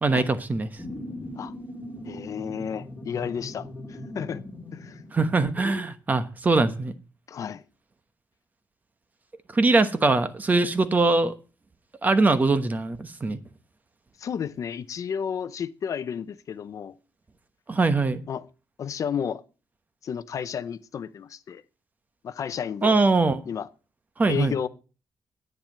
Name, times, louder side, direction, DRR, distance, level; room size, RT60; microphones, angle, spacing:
voice 1, 0.0-0.7 5.1-6.9 9.5-11.3 12.0-13.4 17.7-18.2 22.8-23.4 24.2-24.5, right 3 dB, 25° right, 1.0 m, -22 dB
sound 1, 0.8-5.8, left 1 dB, 15° left, 2.7 m, -40 dB
voice 2, 2.0-4.4 4.7-5.0 7.3-7.6 14.2-17.0 18.3-18.4 18.8-19.4 20.0-21.6 22.2-23.0 23.5-23.7 24.3-24.7, left 7 dB, 50° left, 0.7 m, -32 dB
10.5 x 9.0 x 6.5 m
wide cardioid pair, 150°, 7 cm